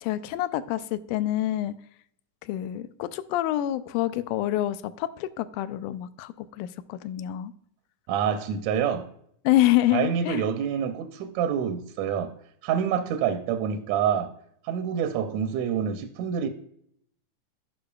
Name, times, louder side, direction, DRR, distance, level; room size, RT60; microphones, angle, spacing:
voice 1, 0.0-1.7 2.5-7.5 9.5-10.4, left 14 dB, 80° left, 2.0 m, -27 dB
voice 2, 8.1-9.1 9.9-12.3 12.6-14.3 14.6-16.5, right 8 dB, 80° right, 1.7 m, -27 dB
11.5 x 5.8 x 2.3 m
omnidirectional pair, 3.7 m